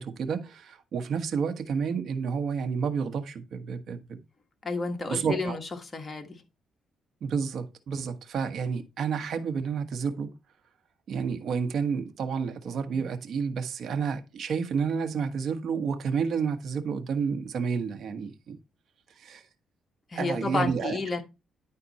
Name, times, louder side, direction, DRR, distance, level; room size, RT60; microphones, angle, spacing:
voice 1, 0.0-4.2 5.1-5.6 7.2-10.4 11.1-18.6 19.2-19.4 20.2-21.0, right 6 dB, 65° right, 1.3 m, -30 dB
voice 2, 4.6-6.4 20.1-21.2, left 3 dB, 25° left, 1.6 m, -31 dB
10.5 x 4.2 x 4.2 m
cardioid pair, 90°, 0 cm